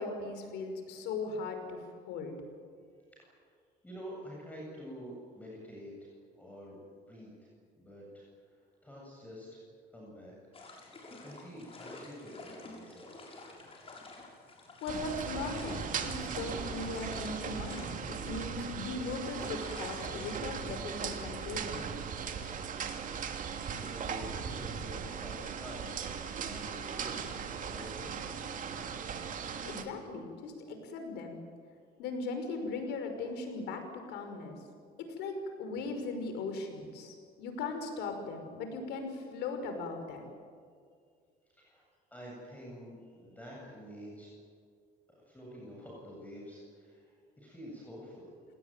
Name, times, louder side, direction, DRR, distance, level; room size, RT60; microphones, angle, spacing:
voice 1, 0.0-2.4 14.8-21.9 29.6-31.4 32.0-34.6 35.0-40.2, left 3 dB, 85° left, 6 dB, 5.6 m, -38 dB
voice 2, 3.8-7.5 7.8-9.6 9.9-10.3 10.9-13.3 23.1-25.9 26.3-27.3 27.6-28.1 41.5-41.8 42.1-44.3 45.1-48.3, equal, 10° left, -4 dB, 7.9 m, -48 dB
sound 1, 10.5-21.7, left 2 dB, 35° left, 7.1 m, -51 dB
sound 2, 14.9-29.8, right 7 dB, 50° right, 2.8 m, -38 dB
28.5 x 19.5 x 9.3 m, 2.1 s
cardioid pair, 110°, 17 cm